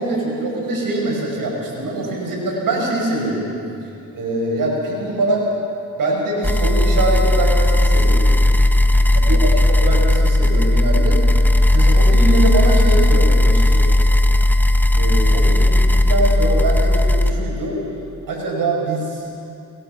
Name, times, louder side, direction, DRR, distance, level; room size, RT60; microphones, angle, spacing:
voice 1, 0.0-3.5 4.1-5.5 6.0-8.3 9.1-13.9 14.9-17.8 18.3-19.2, right 2 dB, 80° right, -1 dB, 6.2 m, -23 dB
sound 1, 6.4-17.3, left 1 dB, 5° left, 1.2 m, -15 dB
22.5 x 21.5 x 6.1 m, 2.6 s
cardioid pair, 60°, 33 cm